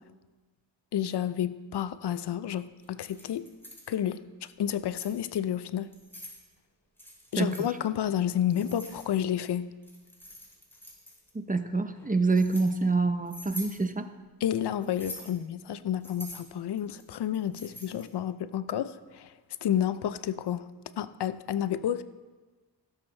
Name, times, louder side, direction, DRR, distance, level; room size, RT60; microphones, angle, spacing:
voice 1, 0.9-3.5 3.9-5.9 7.3-9.7 14.4-19.3 19.6-20.7 21.0-22.0, left 10 dB, 70° left, 13 dB, 0.6 m, -30 dB
Keys jangling, 2.8-3.9 4.6-5.2 5.8-6.4 7.0-7.7 8.5-9.4 9.8-11.3 11.9-12.7 13.3-13.8 14.8-15.4 16.0-18.1, equal, 5° left, 3.4 m, -45 dB
voice 2, 11.3-14.1, right 3 dB, 20° right, 9 dB, 0.7 m, -26 dB
17.0 x 7.2 x 3.3 m, 1.3 s
cardioid pair, 70°, 42 cm